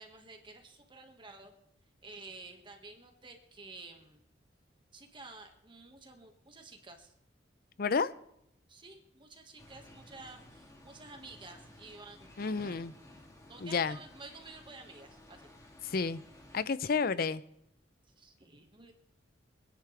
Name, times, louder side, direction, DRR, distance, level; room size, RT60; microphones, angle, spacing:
voice 1, 0.0-1.5 2.0-4.2 4.9-7.1 8.7-12.8 13.5-15.5 18.2-18.9, right 3 dB, 30° right, 1.7 m, -51 dB
voice 2, 7.8-8.1 12.4-12.9 13.6-14.0 15.8-16.2 16.5-17.4, left 5 dB, 55° left, 0.6 m, -30 dB
sound 1, 9.6-16.7, left 1 dB, 20° left, 1.8 m, -55 dB
26.0 x 10.5 x 3.4 m
head